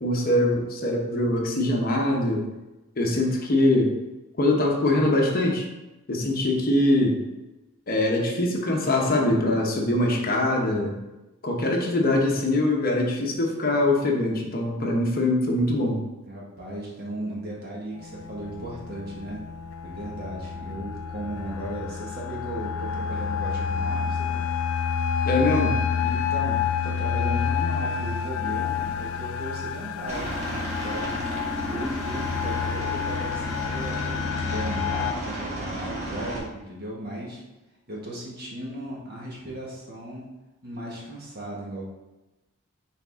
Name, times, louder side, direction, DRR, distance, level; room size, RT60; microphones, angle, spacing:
voice 1, 0.0-2.5 3.0-3.9 4.4-5.7 6.1-7.2 7.9-10.9 11.4-16.0 25.2-25.8, left 1 dB, 45° left, 0 dB, 0.9 m, -23 dB
voice 2, 6.2-6.5 16.3-19.4 19.8-24.5 26.0-31.2 31.7-37.4 37.9-40.3 40.6-41.9, right 1 dB, 45° right, -4 dB, 1.6 m, -36 dB
sound 1, 18.0-35.1, left 7 dB, 75° left, 0.3 m, -29 dB
Aircraft, 30.1-36.4, right 1 dB, 30° right, 1.6 m, -33 dB
6.5 x 4.2 x 3.6 m, 1.0 s
head